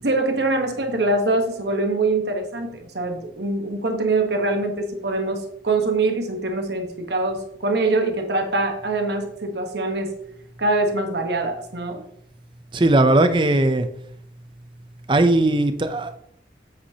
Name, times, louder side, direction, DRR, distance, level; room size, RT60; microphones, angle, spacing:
voice 1, 0.0-10.1 10.6-12.0, right 2 dB, 70° right, 5 dB, 1.2 m, -23 dB
voice 2, 12.7-13.9 15.1-16.2, right 2 dB, 25° right, 10 dB, 0.6 m, -18 dB
8.2 x 8.1 x 2.9 m, 0.71 s
head